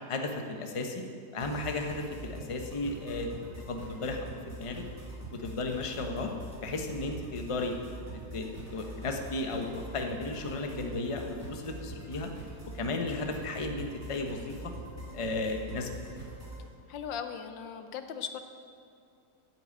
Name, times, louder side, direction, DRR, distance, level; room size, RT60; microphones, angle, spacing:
voice 1, 0.1-1.0 1.3-3.3 3.7-4.8 5.3-6.3 6.6-7.8 8.3-12.3 12.7-14.6 15.1-15.9, left 2 dB, 25° left, 3 dB, 0.7 m, -34 dB
sound 1, 1.4-16.6, right 2 dB, 10° right, 2.5 m, -44 dB
voice 2, 16.9-18.4, left 7 dB, 90° left, 8 dB, 1.5 m, -38 dB
9.0 x 8.6 x 8.4 m, 2.4 s
omnidirectional pair, 2.0 m